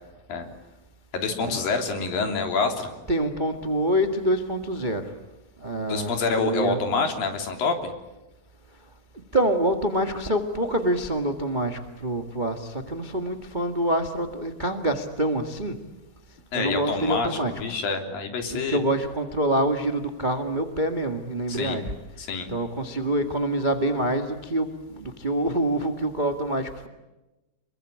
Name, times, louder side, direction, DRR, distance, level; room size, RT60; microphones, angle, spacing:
voice 1, 1.1-2.9 5.9-7.8 16.5-18.8 21.5-21.8 22.2-22.5, left 4 dB, 70° left, 5 dB, 4.9 m, -27 dB
voice 2, 3.1-5.1 5.6-6.8 9.3-15.8 16.5-17.5 18.5-21.9 22.5-26.9, right 1 dB, 50° right, 6 dB, 0.5 m, -26 dB
28.0 x 23.0 x 8.9 m, 1.1 s
omnidirectional pair, 4.3 m